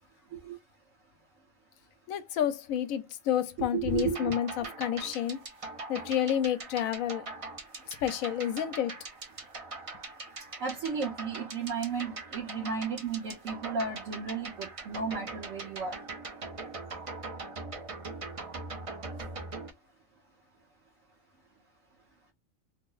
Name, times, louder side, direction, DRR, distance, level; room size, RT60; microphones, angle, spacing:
voice 1, 2.1-5.4 5.9-7.3 8.0-8.9, left 10 dB, 85° left, 1.0 m, -30 dB
voice 2, 3.7-4.4 10.6-15.9, right 5 dB, 70° right, 1.3 m, -33 dB
sound 1, 3.9-19.7, right 3 dB, 40° right, 0.4 m, -42 dB
3.1 x 2.0 x 3.8 m
omnidirectional pair, 1.4 m